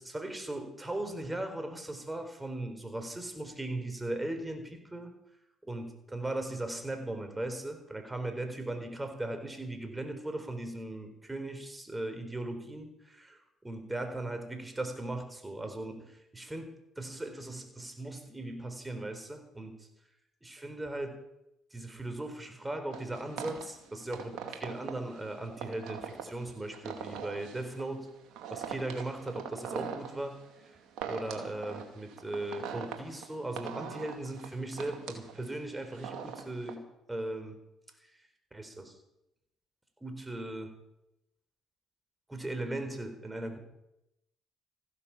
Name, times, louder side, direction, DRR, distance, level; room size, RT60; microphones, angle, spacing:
voice 1, 0.0-5.1 5.6-19.9 20.4-21.2 21.7-28.1 28.5-30.8 31.0-36.8 37.1-37.6 38.0-38.2 38.5-39.0 40.0-40.7 42.3-43.6, right 2 dB, 15° right, 7 dB, 4.1 m, -38 dB
sound 1, 22.9-36.7, right 7 dB, 70° right, 2.4 m, -42 dB
15.5 x 12.0 x 7.3 m, 0.86 s
hypercardioid pair, 60°, 0 cm